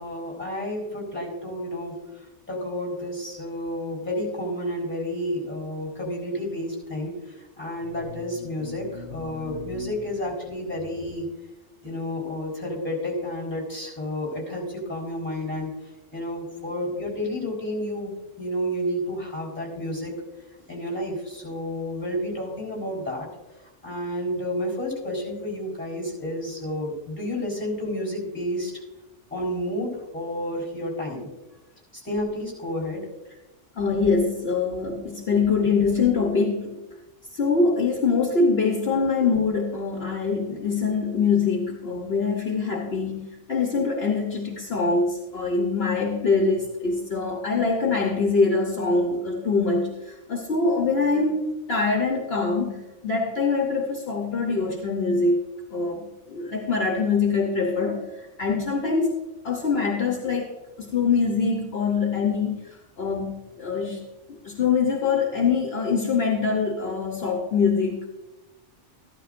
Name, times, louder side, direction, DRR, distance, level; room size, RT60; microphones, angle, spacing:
voice 1, 0.0-2.0 2.5-7.1 7.6-11.3 11.8-15.7 16.1-20.1 20.7-23.3 23.8-28.7 29.3-31.3 32.0-33.0, left 1 dB, 10° left, -1 dB, 4.1 m, -30 dB
voice 2, 8.6-9.9 33.8-36.8 37.3-43.2 43.5-55.4 55.7-58.1 58.4-59.1 59.4-60.5 60.9-62.6 63.0-64.0 64.4-68.1, left 4 dB, 55° left, 1 dB, 1.2 m, -24 dB
14.0 x 12.0 x 2.5 m, 1.1 s
omnidirectional pair, 1.2 m